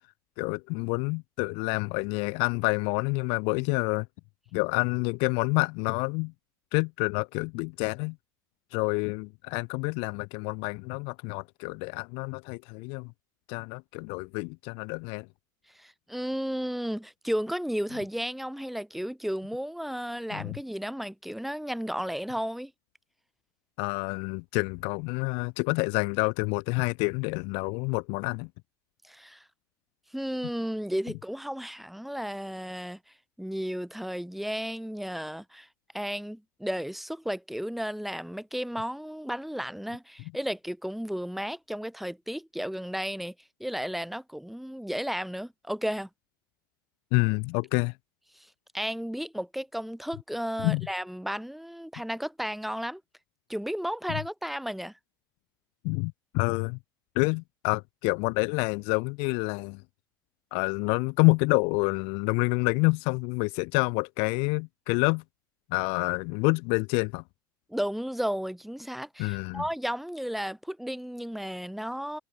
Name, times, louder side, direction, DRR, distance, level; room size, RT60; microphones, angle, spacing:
voice 1, 0.4-4.1 4.5-6.3 6.7-8.1 8.7-13.1 13.5-15.3 20.3-20.6 23.8-28.5 47.1-47.9 50.6-50.9 55.8-56.8 57.1-59.8 60.5-65.2 65.7-67.2 69.2-69.6, left 33 dB, 60° left, 1.2 m, -28 dB
voice 2, 15.7-22.7 29.0-29.4 30.1-33.0 33.4-35.7 35.9-43.3 43.6-46.1 48.3-53.0 53.5-54.9 67.7-72.2, equal, ahead, 6.2 m, -33 dB
hypercardioid pair, 95°, 11 cm